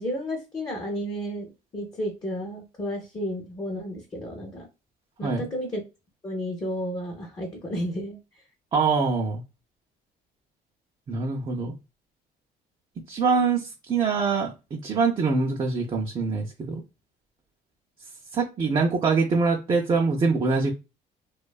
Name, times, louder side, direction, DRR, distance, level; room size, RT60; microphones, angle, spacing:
voice 1, 0.0-1.5 1.7-4.7 5.2-5.8 6.2-8.2, equal, 25° left, 1 dB, 0.6 m, -32 dB
voice 2, 8.7-9.4 11.1-11.7 13.1-16.8 18.3-20.7, right 4 dB, 30° right, 0 dB, 0.4 m, -24 dB
2.5 x 2.2 x 2.3 m, 0.27 s
cardioid pair, 110°, 17 cm